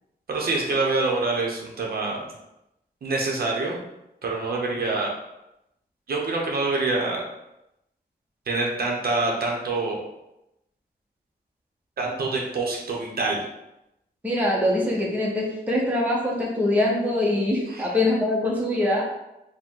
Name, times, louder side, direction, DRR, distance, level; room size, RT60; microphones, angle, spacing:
voice 1, 0.3-2.3 3.0-3.8 4.2-5.1 6.1-7.2 8.5-10.0 12.0-13.4 17.7-17.8, right 3 dB, 65° right, -1 dB, 0.8 m, -26 dB
voice 2, 14.2-19.0, left 1 dB, 10° right, -4 dB, 0.8 m, -23 dB
4.9 x 2.2 x 3.7 m, 0.88 s
wide cardioid pair, 165°, 17 cm